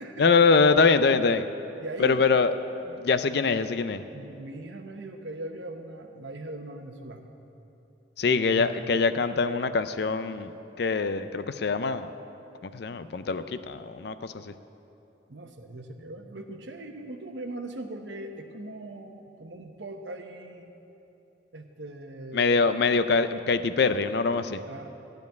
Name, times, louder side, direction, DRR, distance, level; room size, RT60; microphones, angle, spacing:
voice 1, 0.2-1.5 2.0-2.5 2.8-4.0 8.2-10.5 10.8-12.1 12.6-14.5 22.3-24.6, left 4 dB, 55° left, 11 dB, 0.4 m, -23 dB
voice 2, 1.8-2.2 3.3-3.6 4.1-7.3 8.3-8.8 15.3-20.7 21.5-22.7 24.7-25.0, right 1 dB, 70° right, 5 dB, 1.0 m, -40 dB
14.0 x 5.3 x 9.2 m, 2.9 s
head